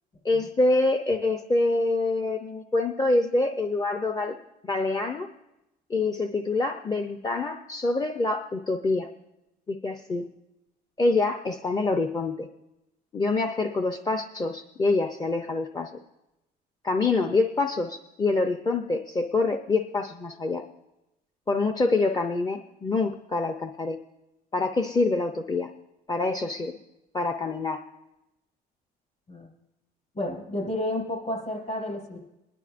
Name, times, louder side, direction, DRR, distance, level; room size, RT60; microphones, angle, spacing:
voice 1, 0.2-4.4 4.6-5.3 5.9-9.1 9.7-10.3 11.0-12.5 13.1-15.9 16.8-20.6 21.5-24.0 24.5-25.7 26.1-26.8 27.1-27.8, left 3 dB, 25° left, 5 dB, 0.6 m, -26 dB
voice 2, 30.1-32.2, left 1 dB, 45° left, -2 dB, 5.2 m, -31 dB
26.5 x 10.5 x 2.5 m, 0.92 s
cardioid pair, 110°, 17 cm